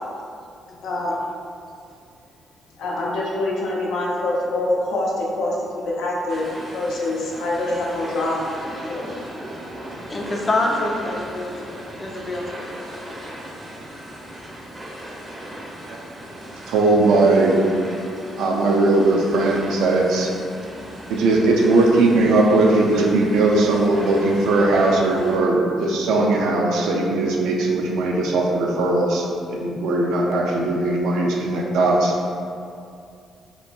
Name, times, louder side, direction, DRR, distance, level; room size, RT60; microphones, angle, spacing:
voice 1, 0.8-1.1 2.8-6.5 6.7-8.4 8.9-9.2, left 2 dB, 85° left, -4 dB, 0.5 m, -25 dB
sound 1, 6.3-25.4, right 1 dB, 25° right, 0.5 m, -37 dB
voice 2, 10.1-13.2, left 2 dB, 30° left, -1 dB, 0.4 m, -27 dB
voice 3, 16.7-17.6 18.4-20.3 21.1-32.2, right 2 dB, 85° right, -1 dB, 0.3 m, -19 dB
2.8 x 2.5 x 2.2 m, 2.4 s
cardioid pair, 90°, 0 cm